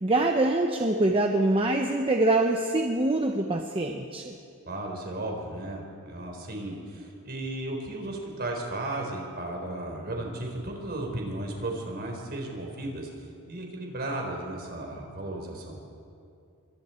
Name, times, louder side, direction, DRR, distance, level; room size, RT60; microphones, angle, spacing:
voice 1, 0.0-4.3, right 2 dB, 25° right, 3 dB, 1.0 m, -24 dB
voice 2, 4.7-13.1 13.5-15.8, right 1 dB, 45° right, 1 dB, 4.2 m, -35 dB
26.0 x 23.5 x 4.5 m, 2.5 s
head